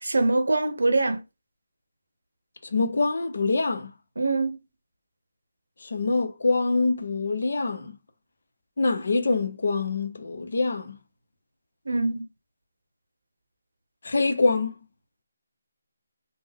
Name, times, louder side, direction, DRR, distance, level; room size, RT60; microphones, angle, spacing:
voice 1, 0.0-1.2 4.2-4.6 11.9-12.3, right 2 dB, 80° right, 0.6 m, -23 dB
voice 2, 2.6-3.9 5.8-8.0 8.8-11.0 14.0-14.7, left 3 dB, 65° left, 0.6 m, -25 dB
3.4 x 2.1 x 3.5 m
figure-of-eight pair, 155°, 0 cm